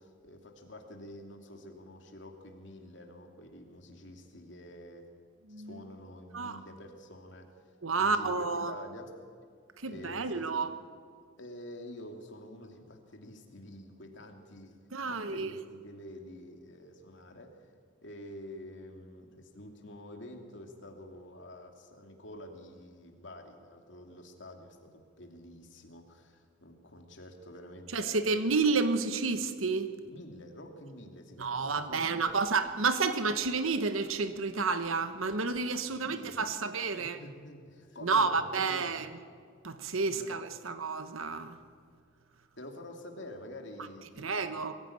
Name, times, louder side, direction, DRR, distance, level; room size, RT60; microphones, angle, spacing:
voice 1, 0.0-5.0 5.5-7.6 8.0-9.1 9.9-10.6 11.4-14.8 15.0-17.6 18.0-28.4 30.0-32.2 35.6-36.4 37.0-39.0 40.1-40.4 42.6-44.6, left 1 dB, 60° left, 3 dB, 2.7 m, -48 dB
voice 2, 5.5-5.8 6.3-6.6 7.8-8.7 9.8-10.7 14.9-15.5 27.9-29.9 31.4-37.2 38.0-39.1 39.6-41.6 44.2-44.7, right 4 dB, 80° right, 10 dB, 1.2 m, -30 dB
22.5 x 15.0 x 8.8 m, 2.1 s
head